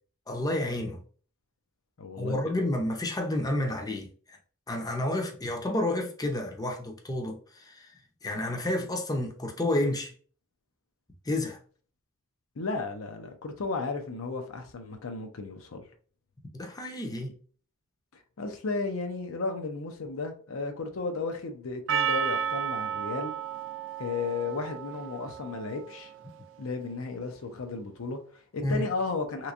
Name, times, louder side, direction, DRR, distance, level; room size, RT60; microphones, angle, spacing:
voice 1, 0.3-1.0 2.2-4.4 4.7-7.9 8.2-10.1 11.3-11.6 16.5-17.3 28.6-28.9, left 1 dB, 20° left, 0.6 m, -30 dB
voice 2, 2.0-2.5 12.6-15.8 18.4-23.3 24.0-26.1 26.6-29.5, left 3 dB, 75° left, 0.6 m, -34 dB
Percussion, 21.9-26.4, right 7 dB, 60° right, 0.4 m, -33 dB
3.3 x 3.0 x 2.5 m
head